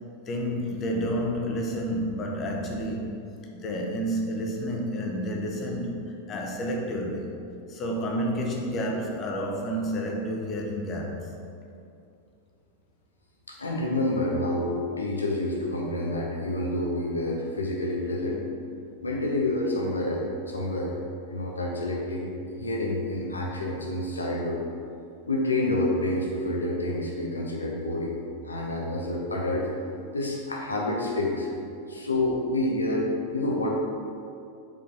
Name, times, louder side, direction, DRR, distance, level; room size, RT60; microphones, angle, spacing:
voice 1, 0.3-3.1 3.5-7.3 7.7-11.3, equal, 30° left, 0 dB, 1.1 m, -30 dB
voice 2, 13.5-18.4 19.0-21.0 21.3-22.3 22.6-24.6 25.2-28.2 28.4-29.7 30.1-31.5 31.9-33.7, left 1 dB, 75° left, -2 dB, 0.9 m, -28 dB
5.5 x 5.0 x 5.2 m, 2.5 s
figure-of-eight pair, 90°, 0 cm